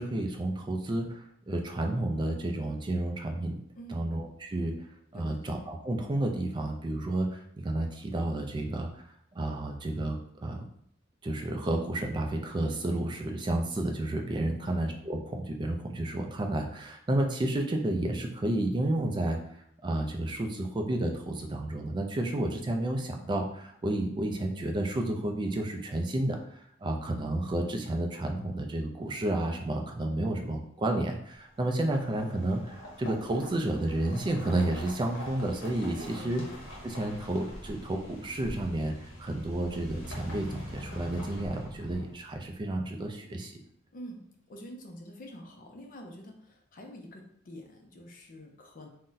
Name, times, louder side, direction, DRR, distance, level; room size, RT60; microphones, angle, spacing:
voice 1, 0.0-3.6 3.9-4.7 5.1-9.0 9.3-10.7 11.2-19.4 19.8-36.4 36.8-43.6, right 1 dB, 25° right, 3 dB, 0.3 m, -31 dB
voice 2, 3.7-4.1 5.1-5.6 14.6-15.0 35.9-36.6 43.9-48.9, equal, 45° left, 2 dB, 0.5 m, -46 dB
sound 1, 31.5-42.4, equal, 70° left, 0.9 m, -44 dB
2.6 x 2.1 x 3.8 m, 0.69 s
head